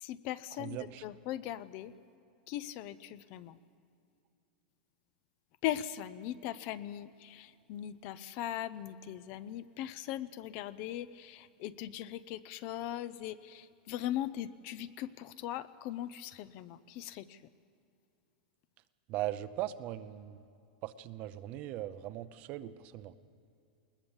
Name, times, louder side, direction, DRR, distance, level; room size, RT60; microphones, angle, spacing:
voice 1, 0.0-1.9 2.5-3.6 5.6-17.4, left 12 dB, 35° left, 16 dB, 0.5 m, -39 dB
voice 2, 0.6-1.0 19.1-20.4 20.8-23.1, right 14 dB, 30° right, 13 dB, 0.6 m, -39 dB
21.0 x 20.0 x 7.2 m, 2.6 s
supercardioid pair, 175°, 5 cm